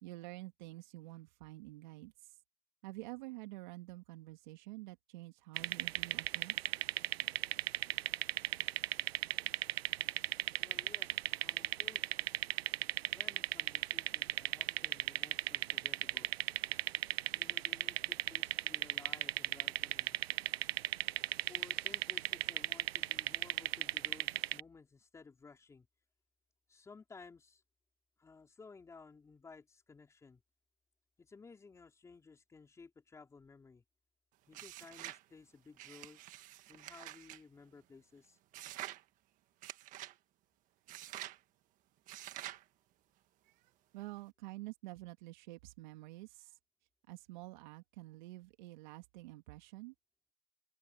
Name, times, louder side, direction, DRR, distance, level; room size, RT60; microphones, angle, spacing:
voice 1, 0.0-2.3 2.8-6.6 43.5-43.6 43.9-46.6 47.1-49.9, right 19 dB, 50° right, 2.4 m, -48 dB
sound 1, 5.6-24.6, right 13 dB, 85° right, 0.7 m, -36 dB
voice 2, 10.6-12.3 13.1-16.3 17.3-20.2 21.5-25.9 26.7-27.6 28.2-30.4 31.2-33.8 34.5-36.2 36.7-38.4, left 4 dB, 10° left, 4.3 m, -57 dB
sound 2, 34.5-35.2 35.8-37.4 38.5-39.0 39.6-40.1 40.9-41.4 42.1-42.6, right 15 dB, 25° right, 1.5 m, -47 dB
open air
supercardioid pair, 155°, 30 cm